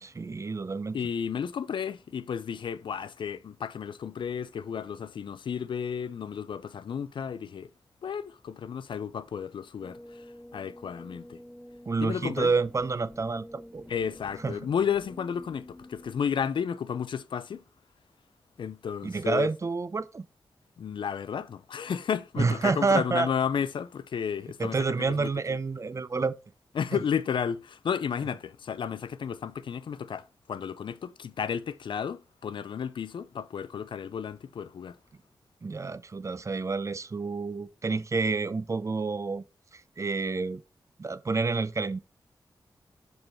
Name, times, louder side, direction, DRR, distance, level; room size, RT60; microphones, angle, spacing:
voice 1, 0.0-1.0 11.9-13.9 14.4-14.6 19.0-20.3 22.4-23.3 24.6-26.4 26.9-27.0 35.6-39.4 39.7-40.6 41.0-42.0, right 4 dB, 40° right, 0.5 m, -29 dB
voice 2, 0.9-7.7 8.0-10.2 10.5-11.4 12.0-12.5 13.9-17.6 18.6-19.5 20.8-25.6 26.8-35.0, left 7 dB, 75° left, 0.4 m, -32 dB
sound 1, 9.8-16.1, left 1 dB, 10° left, 1.4 m, -48 dB
5.3 x 4.6 x 4.2 m
cardioid pair, 65°, 8 cm